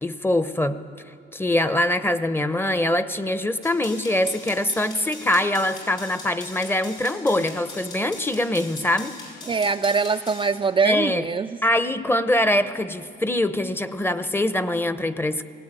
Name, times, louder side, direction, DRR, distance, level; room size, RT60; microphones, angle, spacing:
voice 1, 0.0-0.8 1.3-9.1 10.8-11.3 11.6-15.4, left 1 dB, 10° left, 12 dB, 0.9 m, -23 dB
sound 1, 3.6-10.5, left 3 dB, 85° left, 6.9 m, -41 dB
voice 2, 9.5-11.6, right 5 dB, 25° right, 7 dB, 0.4 m, -23 dB
18.5 x 17.0 x 9.1 m, 2.3 s
cardioid pair, 90°, 20 cm